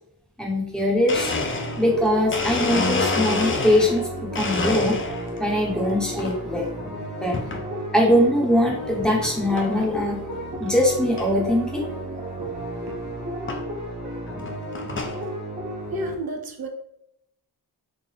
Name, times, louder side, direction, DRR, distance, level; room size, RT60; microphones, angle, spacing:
voice 1, 0.4-1.3 1.8-5.0 5.4-6.7 7.2-7.4 7.9-10.2 10.6-11.8, left 1 dB, ahead, -3 dB, 1.2 m, -21 dB
Domestic sounds home sounds, 0.7-0.8 1.1-4.0 4.3-5.4 5.8-6.3 7.3-7.7 8.2-8.3 9.2-9.3 9.6-9.9 10.3-10.4 10.6-10.7 11.2-11.3 12.6-12.7 13.5-13.6 14.3-15.2, left 3 dB, 30° left, 0.5 m, -27 dB
sound 1, 1.1-16.1, right 1 dB, 50° right, 1.4 m, -33 dB
voice 2, 15.9-16.7, right 1 dB, 65° right, 5 dB, 0.7 m, -31 dB
3.8 x 2.4 x 3.5 m, 0.77 s
wide cardioid pair, 95°, 39 cm